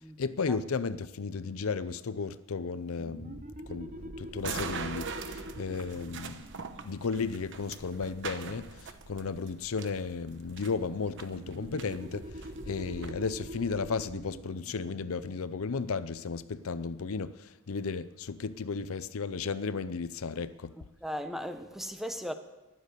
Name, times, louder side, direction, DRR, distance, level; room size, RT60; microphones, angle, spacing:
voice 1, 0.2-6.4 6.8-12.3 12.6-20.7, left 4 dB, 70° left, 0.6 m, -34 dB
sound 1, 2.9-8.3 11.3-16.6, right 1 dB, 35° right, 1.0 m, -45 dB
sound 2, 4.4-13.1, right 5 dB, 55° right, 1.0 m, -43 dB
voice 2, 21.0-22.3, equal, ahead, 0.9 m, -37 dB
15.0 x 12.0 x 6.8 m
head